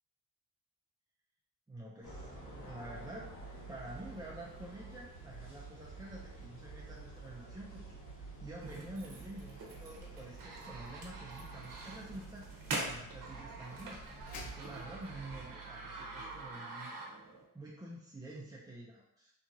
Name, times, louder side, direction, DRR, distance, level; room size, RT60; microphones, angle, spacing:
voice 1, 1.7-2.3 2.6-3.4 3.7-8.0 8.4-12.4 12.7-14.0 14.4-17.2 17.5-19.3, right 1 dB, 10° right, -5 dB, 0.4 m, -48 dB
sound 1, 2.0-15.5, right 1 dB, 65° left, 1.4 m, -52 dB
sound 2, 2.9-16.5, right 5 dB, 80° left, 0.6 m, -54 dB
sound 3, 8.6-17.4, right 3 dB, 70° right, 0.8 m, -45 dB
2.9 x 2.3 x 2.7 m, 0.80 s
cardioid pair, 65°, 35 cm